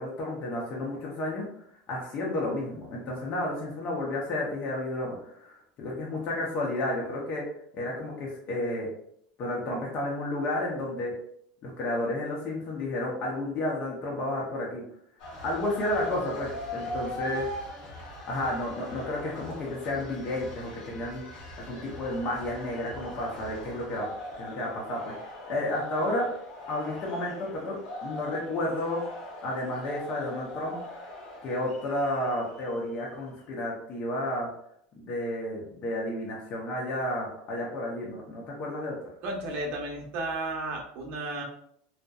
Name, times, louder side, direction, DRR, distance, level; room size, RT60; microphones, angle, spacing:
voice 1, 0.0-1.4 1.9-7.4 7.7-8.9 9.4-11.1 11.6-14.8 15.4-17.5 17.9-18.0 18.3-21.2 21.6-24.0 24.4-25.1 25.5-26.3 26.7-29.0 29.4-30.8 31.4-34.5 35.0-39.0, left 1 dB, 40° left, -3 dB, 0.6 m, -31 dB
sound 1, 15.2-33.0, left 1 dB, 75° left, 0.9 m, -41 dB
voice 2, 39.2-41.4, right 2 dB, 50° right, 0 dB, 0.7 m, -33 dB
2.7 x 2.1 x 2.3 m, 0.71 s
supercardioid pair, 125°, 4 cm